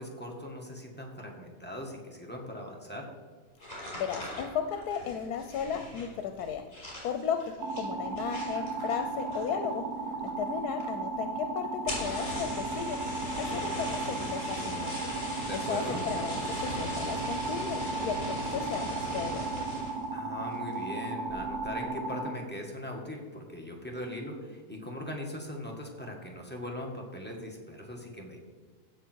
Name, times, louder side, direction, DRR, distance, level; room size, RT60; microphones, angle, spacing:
voice 1, 0.0-3.1 15.4-16.0 20.1-28.4, left 1 dB, 5° left, -1 dB, 1.9 m, -40 dB
sound 1, 3.6-9.7 10.0-10.5 10.8-10.9 11.2-11.3 11.7-20.1 20.5-20.9 21.3-21.7, left 1 dB, 45° left, 4.6 m, -39 dB
voice 2, 3.9-6.6 7.0-9.8 10.4-13.0 13.3-15.1 15.5-19.7, left 7 dB, 85° left, 7 dB, 1.3 m, -35 dB
sound 2, 7.6-22.4, right 3 dB, 85° right, 1.5 m, -35 dB
16.0 x 6.4 x 4.6 m, 1.5 s
omnidirectional pair, 1.6 m